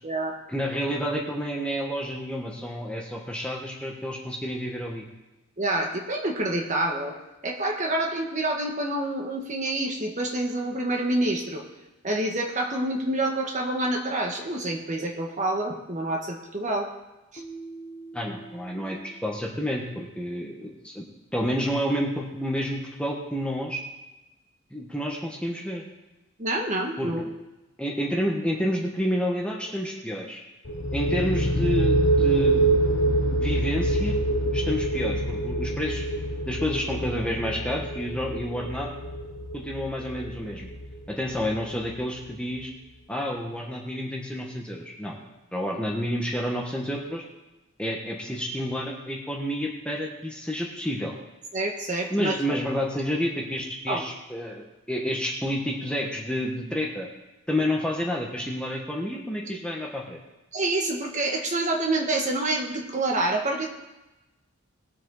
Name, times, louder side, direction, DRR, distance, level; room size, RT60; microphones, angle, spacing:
voice 1, 0.5-5.0 18.1-21.0 21.3-23.8 24.7-25.8 27.0-27.1 27.8-30.4 30.9-32.7 33.3-34.2 34.5-36.0 36.5-38.9 39.5-40.7 41.1-42.7 43.1-45.2 45.5-47.2 47.8-51.1 52.1-57.1 57.5-60.2, equal, 5° left, -2 dB, 1.5 m, -29 dB
voice 2, 5.6-7.1 7.4-11.6 12.0-16.9 17.3-17.4 26.4-27.2 51.5-52.6 53.9-54.0 60.5-63.7, right 2 dB, 35° right, 1 dB, 1.7 m, -27 dB
Keyboard (musical), 17.4-20.2, right 3 dB, 25° left, 1.1 m, -45 dB
sound 1, 30.6-42.2, right 2 dB, 55° left, 0.8 m, -26 dB
20.5 x 7.5 x 4.2 m, 1.0 s
head